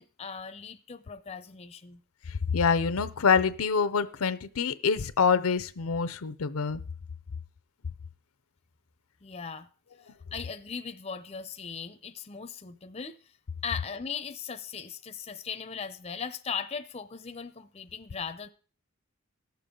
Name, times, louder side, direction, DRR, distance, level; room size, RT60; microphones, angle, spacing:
voice 1, 0.0-2.0 9.2-9.7 10.3-13.2 13.6-18.5, left 6 dB, 30° left, 0.6 m, -38 dB
voice 2, 2.5-6.8, left 5 dB, 80° left, 0.6 m, -26 dB
17.5 x 6.9 x 3.7 m
head